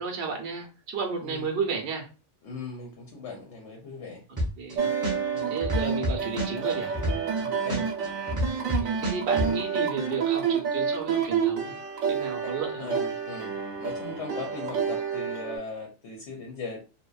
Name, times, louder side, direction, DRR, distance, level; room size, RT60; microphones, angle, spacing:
voice 1, 0.0-2.1 4.6-4.9 5.5-6.9 8.6-11.7 12.0-13.0, right 5 dB, 60° right, 2 dB, 0.8 m, -33 dB
voice 2, 2.4-4.2 5.3-5.6 7.4-7.9 12.4-12.5 12.8-16.8, left 4 dB, 65° left, 0 dB, 0.9 m, -39 dB
sound 1, 4.4-4.7 5.0-7.4 7.7-9.5, equal, 25° right, 0.4 m, -27 dB
sound 2, 4.8-15.6, right 7 dB, 80° right, 1.0 m, -29 dB
2.7 x 2.1 x 2.3 m, 0.32 s
omnidirectional pair, 1.4 m